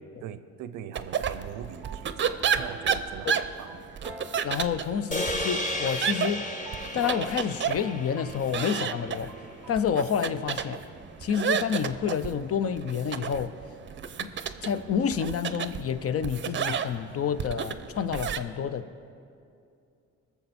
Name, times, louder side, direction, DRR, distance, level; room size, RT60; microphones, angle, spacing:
voice 1, 0.0-3.9, right 10 dB, 90° right, 13 dB, 0.6 m, -42 dB
sound 1, 0.9-18.4, right 7 dB, 40° right, 0.6 m, -32 dB
sound 2, 1.7-9.7, right 1 dB, 5° right, 1.0 m, -46 dB
voice 2, 4.4-6.4 6.9-9.3 9.7-10.8 11.2-13.5 14.2-14.3 14.6-18.9, left 7 dB, 50° left, 13 dB, 0.6 m, -29 dB
sound 3, 5.1-9.5, left 1 dB, 25° left, 1.4 m, -34 dB
21.0 x 7.0 x 4.3 m, 2.6 s
cardioid pair, 90°, 30 cm